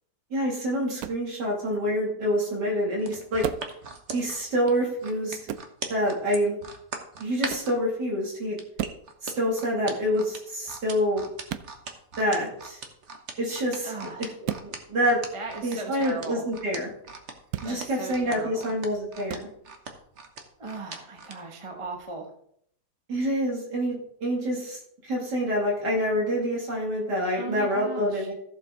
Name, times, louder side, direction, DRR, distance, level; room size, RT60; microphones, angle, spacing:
voice 1, 0.3-3.5 4.1-5.4 5.9-6.6 7.2-8.6 9.2-11.3 12.2-12.8 13.4-13.9 14.2-15.2 15.6-16.9 17.6-19.5 23.1-28.3, equal, 85° right, -3 dB, 3.4 m, -27 dB
sound 1, 1.0-1.3 3.4-3.8 5.5-5.7 7.5-7.7 8.8-9.1 11.5-11.7 14.4-14.7 17.5-17.7 19.3-19.5, right 10 dB, 70° right, 1.0 m, -33 dB
sound 2, 3.0-7.8 8.6-21.4 21.8-22.0, right 4 dB, 45° right, 1.4 m, -39 dB
voice 2, 13.8-14.3 15.3-16.4 17.6-18.7 20.6-22.3 27.3-28.3, right 3 dB, 20° right, 2 dB, 1.1 m, -37 dB
14.5 x 7.0 x 3.9 m, 0.69 s
omnidirectional pair, 1.8 m